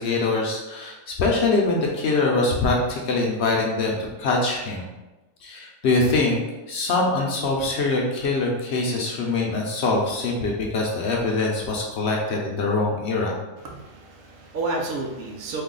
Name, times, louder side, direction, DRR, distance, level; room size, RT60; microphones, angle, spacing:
voice 1, 0.0-4.9 5.4-6.4 6.7-13.4, left 3 dB, 65° left, -1 dB, 0.8 m, -23 dB
voice 2, 13.6-15.6, right 3 dB, 85° right, 0 dB, 1.1 m, -31 dB
3.3 x 2.3 x 3.7 m, 1.1 s
omnidirectional pair, 1.4 m